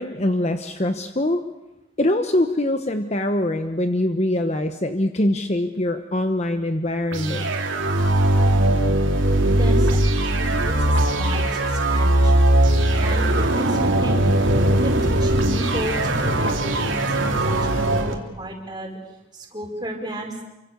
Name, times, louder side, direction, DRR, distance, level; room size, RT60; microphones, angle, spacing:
voice 1, 0.0-1.4 2.0-7.5, left 1 dB, 35° left, 7 dB, 1.0 m, -23 dB
sound 1, 7.1-18.1, right 1 dB, 80° right, 3.5 m, -20 dB
voice 2, 9.5-10.0 10.6-12.7 13.0-14.2 14.8-19.0 19.3-20.4, right 1 dB, 20° right, 1 dB, 4.9 m, -33 dB
27.5 x 25.0 x 6.9 m, 0.98 s
head